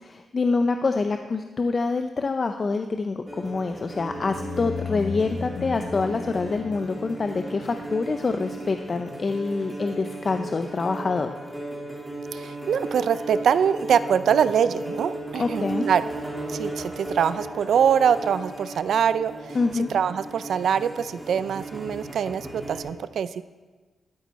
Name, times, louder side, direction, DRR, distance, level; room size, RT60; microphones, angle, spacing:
voice 1, 0.0-11.4 15.4-15.9 19.5-19.9, left 4 dB, 40° left, 7 dB, 0.5 m, -26 dB
sound 1, 3.3-22.8, right 1 dB, 5° right, 2.2 m, -36 dB
sound 2, 4.0-8.6, left 4 dB, 65° left, 0.9 m, -36 dB
voice 2, 12.3-16.1 16.5-23.4, right 8 dB, 80° right, 14 dB, 0.4 m, -24 dB
12.5 x 8.9 x 4.1 m, 1.3 s
cardioid pair, 95°, 0 cm